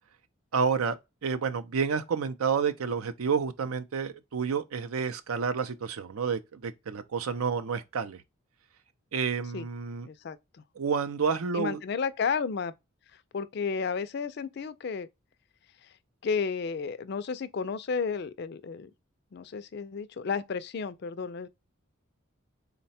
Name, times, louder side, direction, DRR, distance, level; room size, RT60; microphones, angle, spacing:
voice 1, 0.5-8.2 9.1-10.1 10.8-11.8, right 6 dB, 90° right, 0.5 m, -29 dB
voice 2, 10.0-10.6 11.5-12.7 13.1-15.1 15.8-15.9 16.2-18.9 19.3-21.5, left 5 dB, 50° left, 0.3 m, -32 dB
3.9 x 2.2 x 4.1 m
head